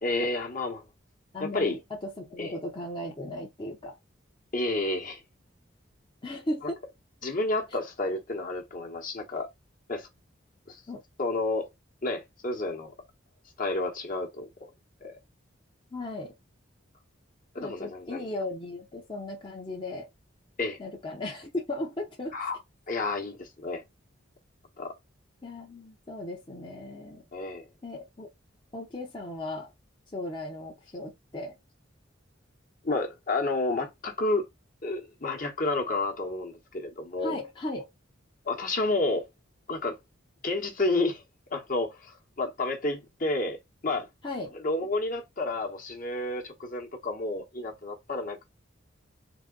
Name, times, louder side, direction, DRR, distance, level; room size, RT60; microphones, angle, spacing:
voice 1, 0.0-0.8 1.4-1.8 2.4-2.5 4.5-5.2 6.6-6.7 7.2-9.5 9.9-10.1 10.7-10.8 11.2-11.7 12.0-12.9 13.6-14.7 15.0-15.1 17.5-18.2 20.6-20.8 22.3-22.6 22.9-23.8 24.8-24.9 27.3-27.7 32.8-34.5 34.8-37.4 38.4-39.3 39.7-40.0 40.4-41.2 41.5-44.1 44.5-48.4, left 2 dB, 45° left, 1.2 m, -30 dB
voice 2, 1.3-4.0 6.2-6.8 10.9-11.0 15.9-16.3 17.6-20.1 20.8-22.4 25.4-27.2 27.8-28.3 28.7-29.7 30.1-31.6 37.2-37.9 44.2-44.6, left 1 dB, 25° left, 0.8 m, -36 dB
4.0 x 2.8 x 3.9 m
head